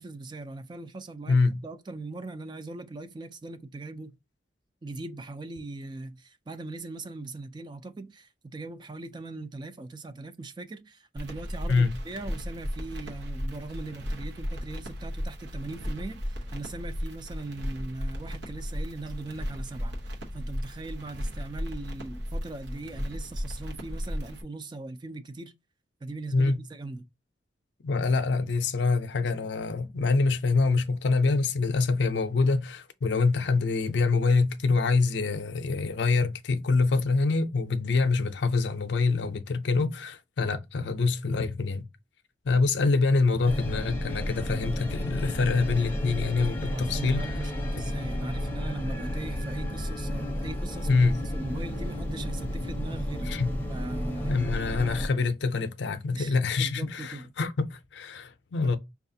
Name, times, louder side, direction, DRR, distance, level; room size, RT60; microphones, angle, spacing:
voice 1, 0.0-4.2 4.8-25.5 26.0-27.1 46.7-51.0 51.3-53.3 53.7-54.5 56.1-57.3 58.6-58.7, right 2 dB, 25° right, 0.3 m, -40 dB
voice 2, 1.3-1.6 11.7-11.9 26.3-26.6 27.8-41.9 42.4-47.2 50.9-51.2 53.3-53.5 54.3-58.8, left 4 dB, 70° left, 0.5 m, -25 dB
sound 1, 11.2-24.4, equal, 75° right, 0.9 m, -35 dB
sound 2, 43.4-55.1, equal, 10° left, 0.6 m, -32 dB
5.5 x 2.4 x 2.7 m
head